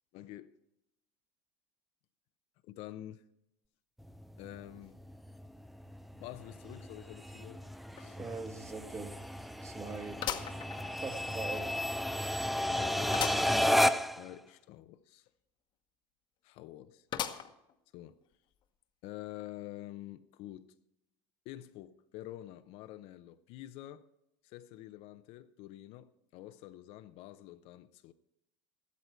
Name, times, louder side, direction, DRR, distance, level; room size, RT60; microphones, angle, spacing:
voice 1, 0.1-0.5 2.6-3.2 4.4-5.0 6.2-7.6 8.0-8.2 12.7-13.8 14.2-15.3 16.4-17.1 17.9-18.2 19.0-20.7 21.4-24.0 24.4-28.1, left 14 dB, 60° left, 0.7 m, -48 dB
sound 1, 4.0-14.3, left 1 dB, ahead, 0.5 m, -33 dB
sound 2, 8.0-8.1 8.5-8.6 10.2-11.3 11.8-11.9 13.1-13.5 14.0-14.1 14.2-14.3 17.1-17.7 18.3-18.4 19.4-19.5, left 10 dB, 45° left, 1.1 m, -38 dB
voice 2, 8.2-9.2 9.6-10.2 11.0-11.7, right 4 dB, 25° right, 1.7 m, -41 dB
13.5 x 12.5 x 4.5 m
supercardioid pair, 105°, 12 cm